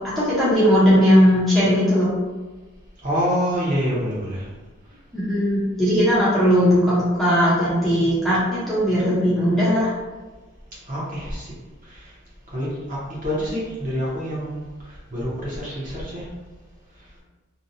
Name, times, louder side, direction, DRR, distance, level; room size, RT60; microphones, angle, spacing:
voice 1, 0.0-2.1 5.1-9.9, equal, ahead, -11 dB, 0.6 m, -18 dB
voice 2, 3.0-4.5 10.9-11.5 12.5-14.6 15.1-16.3, equal, 40° right, -7 dB, 0.8 m, -26 dB
2.8 x 2.2 x 2.6 m, 1.2 s
head